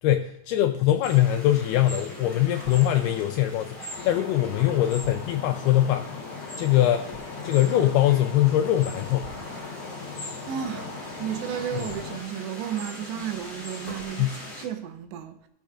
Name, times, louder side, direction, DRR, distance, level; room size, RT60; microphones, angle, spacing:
voice 1, 0.0-6.2 6.6-7.1 7.4-9.3 14.2-14.4, left 13 dB, 85° left, 2.3 m, -22 dB
sound 1, 1.0-14.6, left 1 dB, 10° left, 2.5 m, -41 dB
Stream, 3.9-12.2, left 5 dB, 60° left, 1.9 m, -39 dB
sound 2, 7.1-7.4 9.2-9.6 11.8-12.1 13.2-13.3 13.9-14.2, left 3 dB, 25° right, 3.0 m, -45 dB
voice 2, 10.5-15.5, right 10 dB, 85° right, 2.9 m, -33 dB
18.0 x 7.2 x 2.4 m
omnidirectional pair, 5.0 m